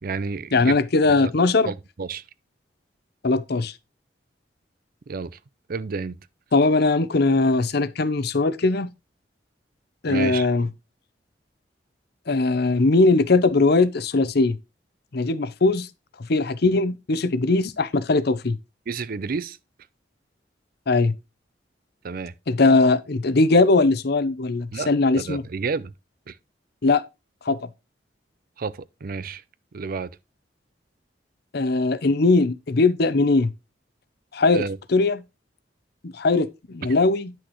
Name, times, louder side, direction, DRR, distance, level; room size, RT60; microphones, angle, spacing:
voice 1, 0.0-0.8 1.2-1.3 1.7-2.2 5.1-5.4 5.7-6.2 10.1-10.5 18.9-19.6 22.0-22.3 24.7-24.9 25.2-25.9 26.3-26.4 28.6-29.4 29.7-30.1 34.5-34.8, right 4 dB, 55° right, 0.5 m, -30 dB
voice 2, 0.5-1.7 3.2-3.7 6.5-8.9 10.0-10.7 12.3-14.6 15.1-15.9 16.3-18.6 20.9-21.1 22.5-25.4 26.8-27.0 27.4-27.6 31.5-33.5 34.3-34.6 34.9-35.2 36.0-37.3, left 3 dB, 60° left, 0.7 m, -20 dB
10.0 x 6.2 x 3.1 m
head